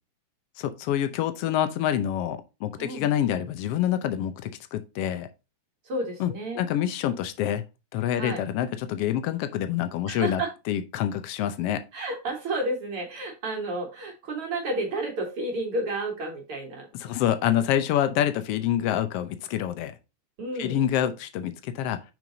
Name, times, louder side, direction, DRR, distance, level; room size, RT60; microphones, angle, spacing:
voice 1, 0.6-5.3 6.2-7.6 7.9-10.4 10.7-11.8 17.0-19.9 20.6-22.0, left 11 dB, 80° left, 1.3 m, -27 dB
voice 2, 2.8-3.1 5.8-6.6 8.2-8.4 10.1-10.5 11.9-17.2 20.4-20.8, right 2 dB, 50° right, 2.2 m, -31 dB
6.2 x 5.3 x 3.9 m
omnidirectional pair, 3.6 m